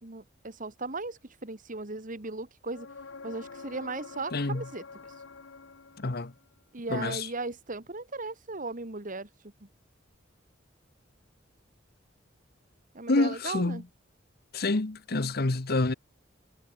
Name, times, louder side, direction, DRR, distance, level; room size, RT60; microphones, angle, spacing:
voice 1, 0.0-2.9 3.2-4.8 6.7-9.3 9.6-9.7 12.9-13.8, right 3 dB, 45° right, 2.0 m, -37 dB
sound 1, 2.7-6.5 10.1-10.2, left 4 dB, 80° left, 1.1 m, -46 dB
voice 2, 4.3-4.7 6.0-6.3 6.9-7.3 13.1-13.8 14.5-15.9, left 2 dB, 55° left, 1.1 m, -27 dB
head